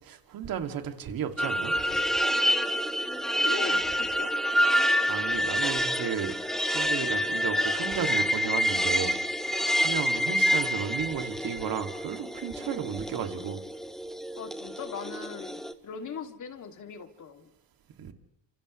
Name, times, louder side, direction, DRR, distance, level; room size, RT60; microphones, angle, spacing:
voice 1, 0.0-1.7 4.8-6.3 6.6-9.2 9.4-13.6 18.0-18.1, right 8 dB, 55° right, 2.6 m, -34 dB
sound 1, 1.4-15.7, equal, ahead, 1.3 m, -27 dB
voice 2, 3.4-4.3 14.4-17.5, left 6 dB, 45° left, 2.8 m, -40 dB
29.0 x 27.5 x 3.3 m
cardioid pair, 100°, 41 cm